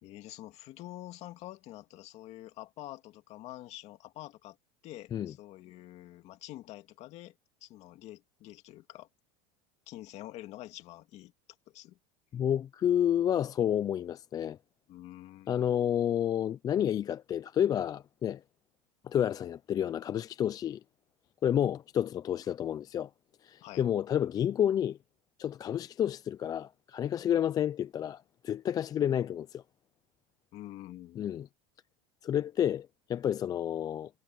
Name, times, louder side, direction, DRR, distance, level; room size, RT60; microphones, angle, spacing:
voice 1, 0.0-4.6 4.8-9.1 9.9-11.3 11.7-12.0 14.9-15.7 23.6-23.9 30.5-31.5, left 15 dB, 50° left, 2.2 m, -47 dB
voice 2, 12.3-14.6 15.5-18.4 19.0-20.8 21.4-23.1 23.4-25.0 25.4-29.6 31.2-31.5 32.2-34.1, left 10 dB, 25° left, 0.4 m, -30 dB
supercardioid pair, 140°, 15 cm